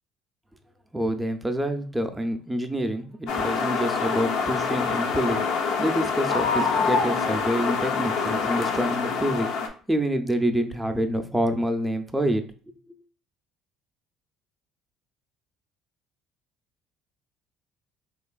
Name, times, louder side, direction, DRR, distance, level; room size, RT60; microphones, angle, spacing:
voice 1, 0.9-9.5 9.9-12.4, equal, 10° right, 6 dB, 0.4 m, -27 dB
sound 1, 3.3-9.7, left 5 dB, 75° left, 0.4 m, -25 dB
3.0 x 2.3 x 2.3 m, 0.41 s
supercardioid pair, 80°, 0 cm